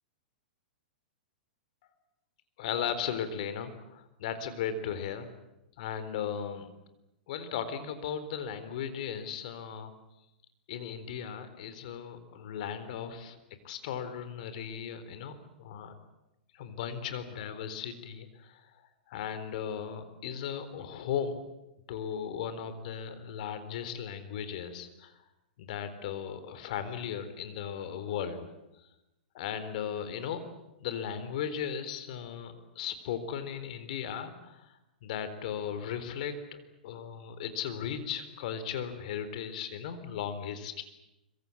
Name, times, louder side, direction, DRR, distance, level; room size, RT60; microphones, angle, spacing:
voice 1, 2.6-5.3 5.8-6.7 7.3-9.9 10.7-13.4 13.6-15.9 16.5-18.7 19.1-21.4 21.9-25.1 25.6-28.5 29.3-30.4 30.8-34.7 35.0-40.8, left 8 dB, 55° left, 10 dB, 4.0 m, -36 dB
25.5 x 24.0 x 8.7 m, 0.92 s
hypercardioid pair, 105°, 5 cm